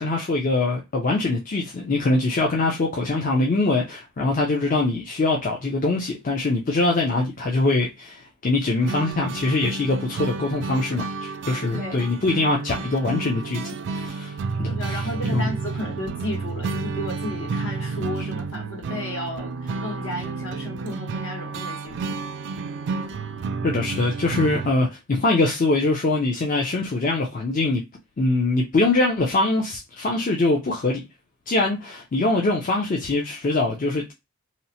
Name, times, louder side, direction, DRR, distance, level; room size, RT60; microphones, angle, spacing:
voice 1, 0.0-15.0 15.3-15.5 23.6-27.8 28.2-31.0 31.5-34.1, left 2 dB, 40° left, 0.4 m, -23 dB
sound 1, 8.8-24.7, right 4 dB, 55° right, 0.3 m, -31 dB
voice 2, 14.6-22.2, left 1 dB, 65° left, 1.0 m, -33 dB
2.8 x 2.0 x 2.7 m
head